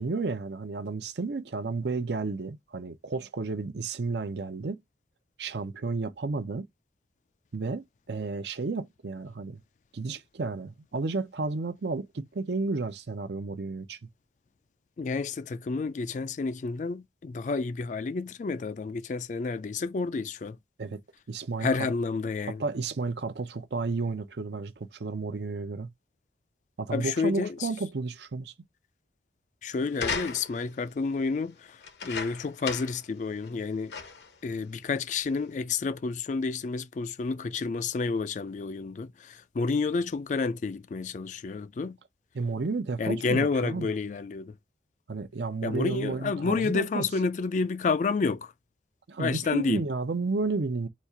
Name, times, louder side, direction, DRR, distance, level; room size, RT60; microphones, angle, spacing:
voice 1, 0.0-4.8 5.4-6.7 7.5-9.6 9.9-14.0 20.8-21.0 21.3-21.9 22.5-25.9 26.8-28.5 42.3-43.9 45.1-47.1 49.1-50.9, right 3 dB, 75° right, 0.6 m, -32 dB
voice 2, 15.0-20.6 21.6-22.6 26.9-27.5 29.6-31.8 32.0-33.9 34.4-42.0 43.0-44.6 45.6-48.5 49.2-49.8, left 4 dB, 45° left, 0.3 m, -30 dB
sound 1, 29.9-30.7 31.8-33.1 33.4-33.5 33.9-34.3 35.1-35.2, left 5 dB, 75° left, 0.8 m, -35 dB
4.1 x 2.4 x 4.6 m
head